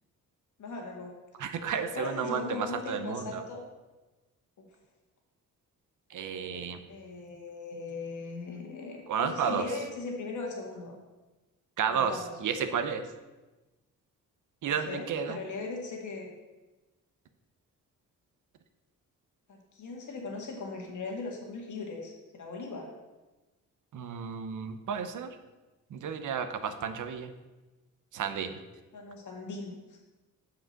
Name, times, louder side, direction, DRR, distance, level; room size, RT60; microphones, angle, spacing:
voice 1, 0.6-1.1 1.9-3.6 4.6-4.7 6.9-11.0 11.9-12.3 14.9-16.3 19.5-22.9 28.9-30.0, left 3 dB, 65° left, 0 dB, 2.0 m, -39 dB
voice 2, 1.4-3.4 6.1-6.8 9.1-9.6 11.8-13.0 14.6-15.4 23.9-25.4 25.9-27.3 28.1-28.6, right 7 dB, 70° right, 9 dB, 0.8 m, -32 dB
6.2 x 4.9 x 6.5 m, 1.1 s
cardioid pair, 85°, 32 cm